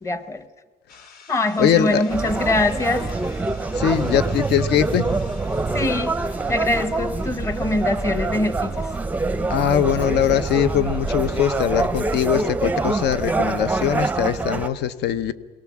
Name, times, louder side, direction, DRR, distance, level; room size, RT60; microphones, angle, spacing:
voice 1, 0.0-0.4 1.3-3.1 5.7-6.2 6.5-8.9, left 2 dB, 15° left, 12 dB, 0.8 m, -23 dB
sound 1, 0.9-14.2, left 5 dB, 55° left, 2.7 m, -51 dB
voice 2, 1.6-2.0 3.7-5.1 9.5-15.3, left 9 dB, 85° left, 14 dB, 0.9 m, -21 dB
sound 2, 2.1-14.7, right 3 dB, 10° right, 0.5 m, -25 dB
21.5 x 18.5 x 7.3 m, 1.4 s
cardioid pair, 175°, 17 cm